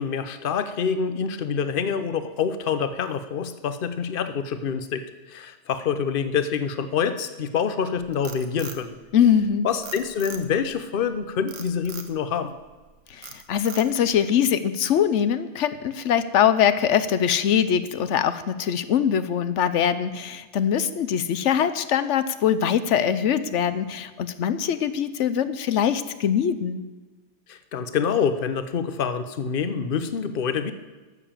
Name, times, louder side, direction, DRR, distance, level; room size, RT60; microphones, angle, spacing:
voice 1, 0.0-8.9 9.6-12.6 27.5-30.7, left 6 dB, 50° left, 10 dB, 0.9 m, -26 dB
Frog, 7.9-9.5 9.8-10.7 11.5-12.1 12.6-12.9 13.2-14.1, right 6 dB, 85° right, 1.4 m, -40 dB
voice 2, 9.1-9.7 13.1-26.8, left 8 dB, 80° left, 13 dB, 1.0 m, -22 dB
13.0 x 7.0 x 7.3 m, 1.3 s
omnidirectional pair, 1.2 m